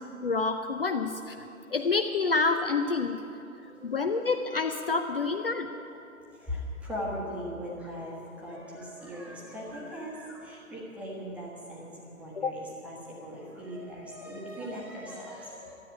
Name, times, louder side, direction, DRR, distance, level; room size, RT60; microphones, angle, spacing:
voice 1, 0.0-1.4 1.7-3.2 3.8-5.7 12.3-12.5, left 4 dB, 40° left, 7 dB, 0.6 m, -28 dB
voice 2, 3.7-4.0 5.2-5.6 6.3-15.7, equal, 5° right, -4 dB, 1.2 m, -39 dB
13.0 x 8.7 x 9.3 m, 3.0 s
figure-of-eight pair, 140°, 42 cm